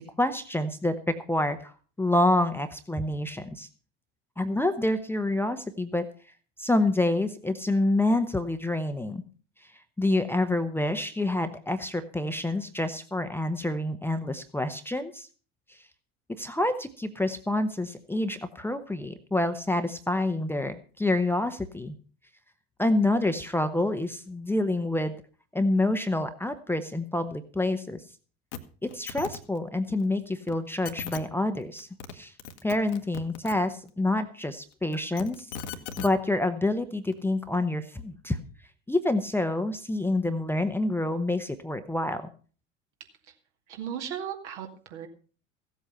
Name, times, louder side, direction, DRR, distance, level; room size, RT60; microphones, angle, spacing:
voice 1, 0.2-3.7 4.4-6.0 6.6-9.2 10.0-15.3 16.3-21.9 22.8-25.2 25.5-28.0 28.8-31.9 32.1-32.3 32.6-35.5 36.0-38.4 38.9-42.2, left 2 dB, 5° left, 8 dB, 1.0 m, -27 dB
sound 1, 28.5-28.6 28.9-29.4 30.5-30.6 30.9-31.2 31.8-32.1 32.4-33.6 34.9-36.1 37.1-37.2, left 7 dB, 60° left, 1.4 m, -37 dB
voice 2, 43.7-45.1, right 9 dB, 60° right, 3 dB, 2.4 m, -36 dB
15.5 x 8.0 x 5.7 m, 0.40 s
figure-of-eight pair, 70°, 39 cm